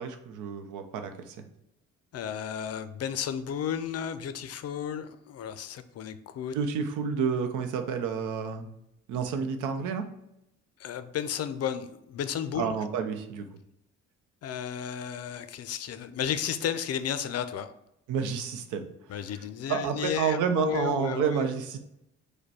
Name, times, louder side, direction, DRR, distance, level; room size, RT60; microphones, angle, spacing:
voice 1, 0.0-1.5 6.5-8.7 9.1-10.0 12.5-13.5 18.1-18.9 19.7-21.8, right 6 dB, 90° right, 7 dB, 0.6 m, -29 dB
voice 2, 2.1-6.5 10.8-12.7 14.4-17.7 19.1-21.4, left 8 dB, 55° left, 11 dB, 0.5 m, -33 dB
4.9 x 2.2 x 4.7 m, 0.82 s
cardioid pair, 90°, 30 cm